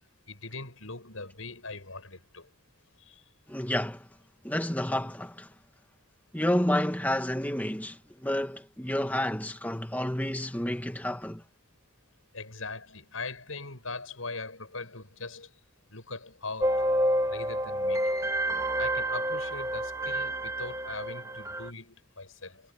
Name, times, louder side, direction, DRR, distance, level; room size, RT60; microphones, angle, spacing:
voice 1, 0.3-2.5 3.1-3.2 12.3-15.5 15.9-16.9 17.3-18.1 18.8-22.6, left 3 dB, 85° left, 6.8 m, -40 dB
voice 2, 3.5-4.1 4.4-5.5 6.3-11.4, left 1 dB, 10° left, 1.5 m, -30 dB
sound 1, 16.6-21.7, right 1 dB, 15° right, 1.4 m, -29 dB
head